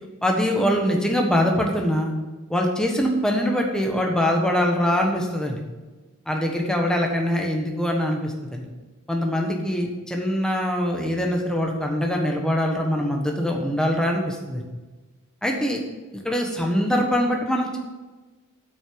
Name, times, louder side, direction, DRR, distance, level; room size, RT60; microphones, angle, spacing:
voice 1, 0.2-2.1 2.5-5.6 6.3-8.7 9.1-14.6 15.4-15.8 16.2-17.8, equal, 5° left, 1 dB, 1.4 m, -23 dB
8.5 x 6.3 x 6.9 m, 1.2 s
head